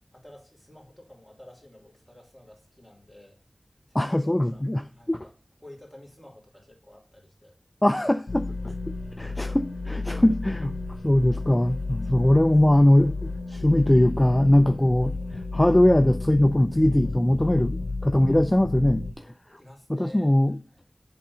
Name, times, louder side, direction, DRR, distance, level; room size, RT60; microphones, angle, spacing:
voice 1, 0.1-3.4 3.9-5.3 5.6-7.6 8.1-8.2 12.0-12.4 19.6-20.3 20.7-20.8, left 1 dB, ahead, 2.9 m, -51 dB
voice 2, 3.9-5.3 7.8-8.7 9.2-10.7 11.0-19.3 19.9-20.6, left 1 dB, 20° left, 0.4 m, -21 dB
sound 1, 8.3-19.1, left 3 dB, 80° left, 0.5 m, -32 dB
7.9 x 3.8 x 5.5 m
wide cardioid pair, 65°, 0 cm